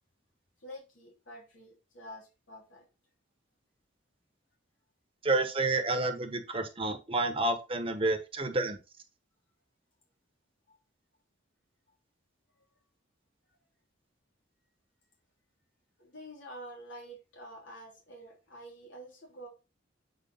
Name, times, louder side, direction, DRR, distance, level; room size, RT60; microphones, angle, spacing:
voice 1, 0.6-2.9 10.7-10.8 16.0-19.5, equal, 80° left, -2 dB, 3.1 m, -48 dB
voice 2, 5.2-8.8, right 2 dB, 30° right, 6 dB, 1.2 m, -29 dB
8.0 x 4.8 x 4.0 m, 0.28 s
head